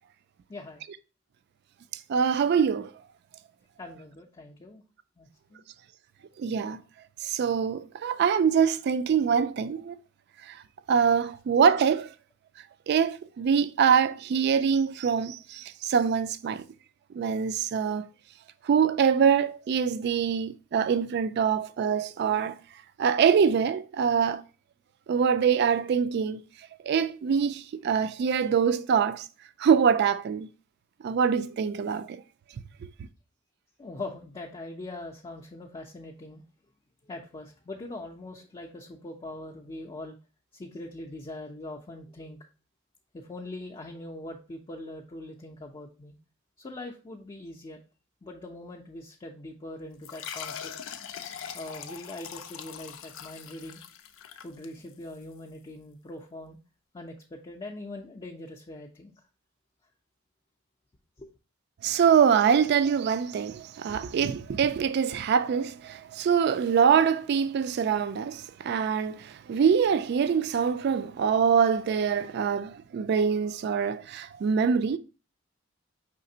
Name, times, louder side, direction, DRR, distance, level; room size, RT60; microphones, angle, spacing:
voice 1, 0.5-0.8 3.8-4.8 5.2-5.6 33.8-36.4 37.1-40.2 40.6-42.4 43.1-46.2 46.6-47.8 48.2-50.7 51.5-53.8 54.4-56.6 56.9-59.1 61.2-61.3, left 2 dB, 25° left, 0.4 m, -42 dB
voice 2, 2.1-2.9 6.4-6.8 7.2-10.0 10.9-12.1 12.9-16.6 17.1-18.1 18.7-22.6 23.0-24.4 25.1-26.4 26.9-29.2 29.6-30.5 31.0-32.2 61.8-75.0, right 7 dB, 55° right, 0.3 m, -24 dB
sound 1, 50.0-55.2, left 8 dB, 85° left, 0.4 m, -41 dB
5.0 x 3.2 x 2.7 m
head